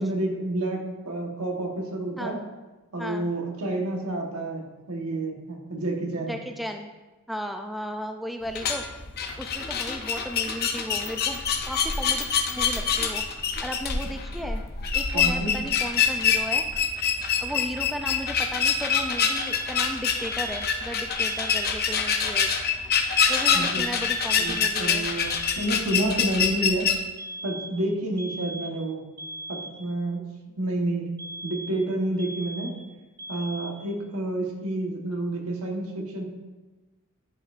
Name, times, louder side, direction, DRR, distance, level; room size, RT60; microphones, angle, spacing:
voice 1, 0.0-2.4 2.9-6.3 15.1-15.6 23.5-23.8 24.4-26.9 27.4-29.0 29.5-30.3 30.6-31.1 31.4-32.7 33.3-36.2, right 1 dB, 90° right, 1 dB, 1.3 m, -29 dB
voice 2, 3.0-3.3 6.3-6.9 7.3-8.8 9.4-13.2 13.6-14.6 14.9-16.7 17.4-22.5 23.3-25.1, equal, ahead, 4 dB, 0.3 m, -35 dB
sound 1, 8.4-26.9, left 6 dB, 45° left, 0.6 m, -26 dB
sound 2, 19.2-19.8 20.2-20.8 21.2-21.8 23.2-23.8 24.2-24.8 25.2-25.8 27.2-27.8 28.2-28.8 29.2-29.8 31.2-31.9 32.2-32.9 33.2-33.9, right 1 dB, 20° right, 0.9 m, -39 dB
10.5 x 5.4 x 2.5 m, 1.2 s
head